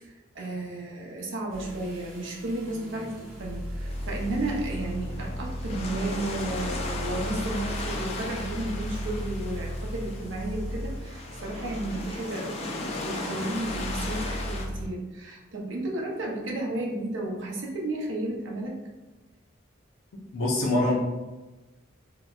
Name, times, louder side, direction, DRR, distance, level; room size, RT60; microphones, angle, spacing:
voice 1, 0.3-18.8, right 2 dB, 65° right, -1 dB, 0.6 m, -33 dB
sound 1, 1.5-14.9, equal, 85° right, 1.0 m, -36 dB
sound 2, 3.9-14.6, left 2 dB, 30° left, 0.3 m, -37 dB
voice 2, 20.3-20.9, left 1 dB, 85° left, -4 dB, 0.5 m, -24 dB
3.8 x 2.1 x 2.3 m, 1.1 s
head